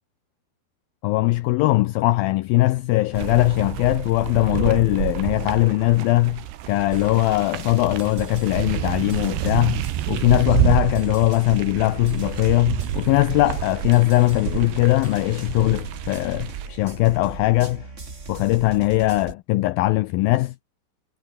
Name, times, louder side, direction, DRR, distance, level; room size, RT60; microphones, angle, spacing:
voice 1, 1.0-17.9 18.3-20.6, left 18 dB, 80° left, 2.1 m, -20 dB
sound 1, 3.1-16.7, right 13 dB, 75° right, 3.5 m, -29 dB
sound 2, 6.9-19.3, right 3 dB, 20° right, 2.0 m, -39 dB
omnidirectional pair, 4.9 m